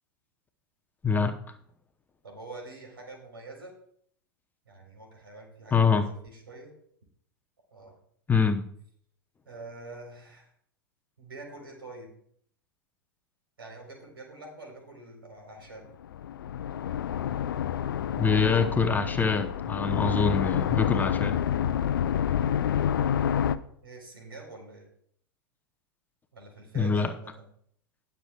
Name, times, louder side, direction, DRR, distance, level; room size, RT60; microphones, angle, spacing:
voice 1, 2.2-3.7 4.7-6.7 7.7-8.0 9.5-10.5 11.2-12.1 13.6-15.9 23.0-24.9 26.3-27.5, right 2 dB, 80° right, 2 dB, 3.8 m, -46 dB
voice 2, 5.7-6.1 8.3-8.6 18.2-21.4 26.7-27.1, left 5 dB, 15° left, 7 dB, 0.8 m, -24 dB
sound 1, 16.0-23.6, left 9 dB, 65° left, 0.5 m, -28 dB
19.5 x 6.9 x 2.3 m, 0.64 s
figure-of-eight pair, 95°, 12 cm